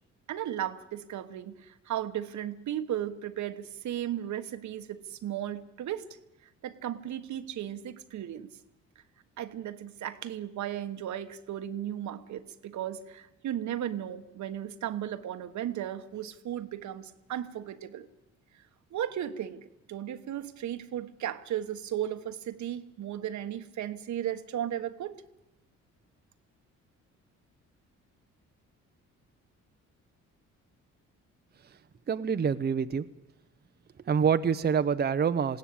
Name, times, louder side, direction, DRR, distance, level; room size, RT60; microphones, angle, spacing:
voice 1, 0.3-6.1 6.6-8.5 9.4-18.1 18.9-25.2, right 11 dB, 70° right, 11 dB, 1.3 m, -35 dB
voice 2, 32.1-33.1 34.1-35.6, right 6 dB, 35° right, 10 dB, 0.7 m, -26 dB
20.5 x 17.0 x 8.8 m, 0.96 s
cardioid pair, 90°, 30 cm